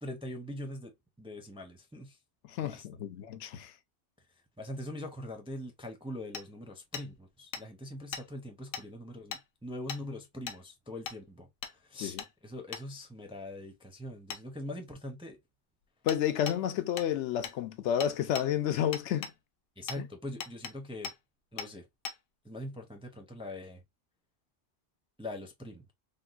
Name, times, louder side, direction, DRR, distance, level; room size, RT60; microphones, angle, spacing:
voice 1, 0.0-0.9 1.2-2.2 2.6-3.0 4.6-11.5 11.9-12.1 12.4-15.4 19.8-21.1 21.5-21.9 22.4-23.8 25.2-25.9, left 1 dB, 5° right, 0.4 m, -42 dB
voice 2, 2.4-3.7 12.0-12.2 16.0-19.3 20.0-20.1, left 10 dB, 85° left, 0.9 m, -31 dB
Hammer, 6.3-6.4 6.9-7.1 7.5-7.6 8.1-8.2 8.7-8.9 9.3-9.4 9.9-10.0 10.5-10.6 11.1-11.2 11.6-11.7 12.2-12.3 12.7-12.8 14.3-14.4 16.1-16.2 16.5-16.6 17.0-17.1 17.4-17.6 18.0-18.5 18.9-19.3 19.9-20.0 20.4-20.7 21.0-21.2 21.6-21.7 22.0-22.2, left 7 dB, 60° left, 0.7 m, -39 dB
3.5 x 2.2 x 2.4 m
omnidirectional pair, 1.2 m